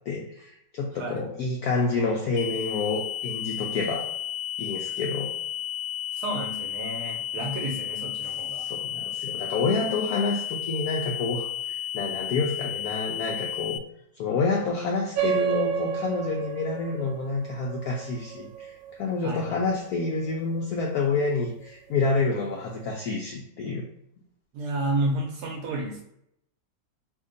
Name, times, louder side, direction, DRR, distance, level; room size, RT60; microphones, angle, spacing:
voice 1, 0.1-4.1 4.6-5.3 8.6-13.8 14.2-23.9, left 3 dB, 90° left, -1 dB, 0.8 m, -28 dB
voice 2, 0.9-1.3 6.1-8.6 19.2-19.7 24.5-26.0, right 1 dB, 70° right, 1 dB, 1.0 m, -31 dB
sound 1, 2.4-13.8, left 11 dB, 70° left, 1.1 m, -33 dB
sound 2, 15.2-20.1, right 7 dB, 85° right, 1.4 m, -31 dB
2.9 x 2.6 x 3.7 m, 0.76 s
omnidirectional pair, 2.1 m